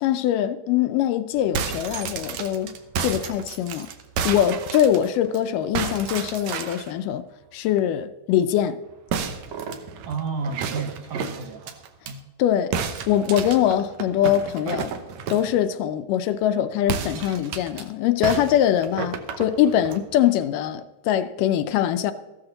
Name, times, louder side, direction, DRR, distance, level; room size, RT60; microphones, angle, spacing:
voice 1, 0.0-3.9 4.2-7.2 7.5-8.8 12.4-12.7 13.1-14.9 15.3-22.1, left 10 dB, 80° left, 2.0 m, -22 dB
sound 1, 1.4-5.4 5.7-6.9 9.1-12.1 12.7-15.5 16.8-17.8 18.2-20.0, right 7 dB, 70° right, 1.8 m, -31 dB
voice 2, 10.1-12.2, right 4 dB, 85° right, 1.3 m, -32 dB
14.5 x 13.0 x 3.9 m
omnidirectional pair, 4.1 m